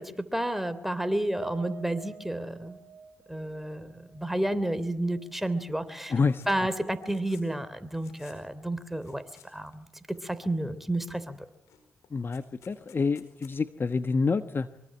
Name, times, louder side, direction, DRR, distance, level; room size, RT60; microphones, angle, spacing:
voice 1, 0.0-2.8 3.3-6.1 6.5-9.9 10.2-11.5, right 1 dB, 5° right, 11 dB, 3.2 m, -31 dB
Piano, 1.4-5.9 6.3-6.4 6.8-6.9, right 6 dB, 65° right, 2.4 m, -48 dB
sound 1, 5.9-6.5 6.8-7.6 7.9-8.4 8.9-9.8 10.1-10.7 11.1-11.3 11.5-13.6, left 9 dB, 85° left, 4.7 m, -58 dB
voice 2, 6.1-6.4 12.1-14.7, left 4 dB, 45° left, 11 dB, 1.1 m, -27 dB
24.5 x 24.0 x 7.7 m, 0.86 s
supercardioid pair, 45°, 5 cm